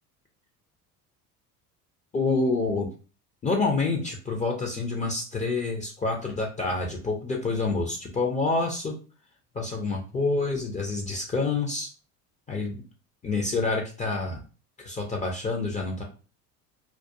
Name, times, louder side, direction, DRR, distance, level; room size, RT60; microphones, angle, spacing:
voice 1, 2.1-2.9 3.4-8.9 9.5-11.9 12.5-12.8 13.2-14.4 14.8-16.0, left 3 dB, 15° left, 1 dB, 0.5 m, -27 dB
2.3 x 2.2 x 2.7 m, 0.35 s
figure-of-eight pair, 70°, 46 cm